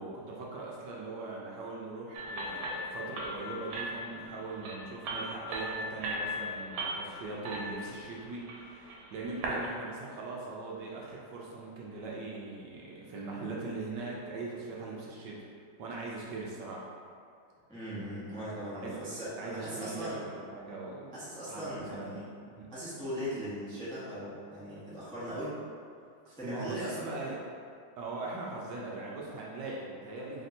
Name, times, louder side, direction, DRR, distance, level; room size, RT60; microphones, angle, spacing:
voice 1, 0.0-15.5 15.8-16.9 18.8-19.0 19.4-21.2 21.4-22.2 22.5-22.7 26.4-27.4 28.0-30.5, right 3 dB, 75° right, -4 dB, 1.1 m, -40 dB
sound 1, 2.1-9.7, right 1 dB, 90° right, 1.4 m, -38 dB
voice 2, 17.7-20.2 21.1-22.3 22.7-25.5 26.2-27.3, equal, 5° left, -11 dB, 0.3 m, -39 dB
3.4 x 2.6 x 4.2 m, 2.3 s
omnidirectional pair, 2.1 m